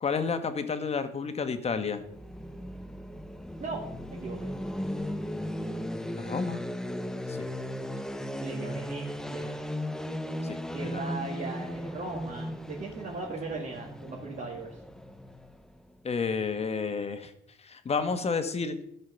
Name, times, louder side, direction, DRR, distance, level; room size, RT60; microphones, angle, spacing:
voice 1, 0.0-2.0 6.2-6.6 7.3-7.5 10.4-11.1 16.0-17.3 17.6-18.8, left 5 dB, 30° left, 9 dB, 1.2 m, -31 dB
sound 1, 2.0-15.9, equal, 5° left, 0.6 m, -36 dB
voice 2, 3.6-4.5 8.4-9.6 10.7-14.8, right 3 dB, 40° right, -3 dB, 2.1 m, -38 dB
12.5 x 5.7 x 6.8 m, 0.75 s
cardioid pair, 125°, 20 cm